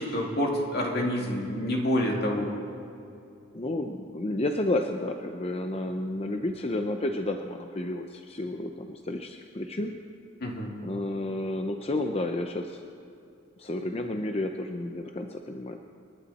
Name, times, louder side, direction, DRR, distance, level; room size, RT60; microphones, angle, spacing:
voice 1, 0.0-2.5 10.4-10.7, equal, 50° left, -1 dB, 2.6 m, -28 dB
voice 2, 3.5-10.0 10.8-12.8 13.6-15.8, left 1 dB, 30° left, 4 dB, 0.7 m, -31 dB
29.0 x 11.5 x 4.2 m, 2.6 s
head